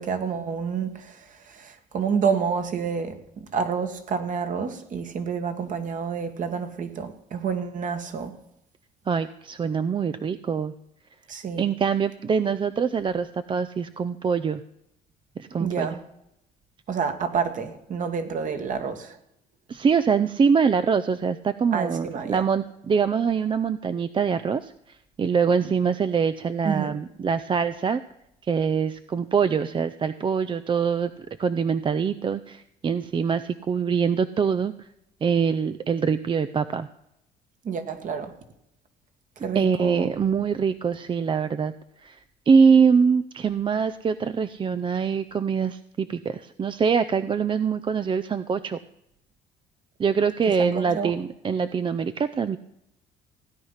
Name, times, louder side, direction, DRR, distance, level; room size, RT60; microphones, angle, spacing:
voice 1, 0.0-8.3 11.3-11.6 15.6-16.0 16.9-19.2 21.7-22.4 26.6-26.9 37.6-38.4 39.4-40.1 50.6-51.1, right 6 dB, 50° right, 1.8 m, -29 dB
voice 2, 9.1-10.7 11.6-14.6 15.4-15.9 19.7-28.0 28.4-31.1 31.4-34.7 35.2-36.9 39.5-41.7 42.0-42.2 42.5-48.8 50.0-52.6, right 6 dB, 30° right, 0.5 m, -24 dB
16.5 x 9.6 x 5.7 m
cardioid pair, 110°, 17 cm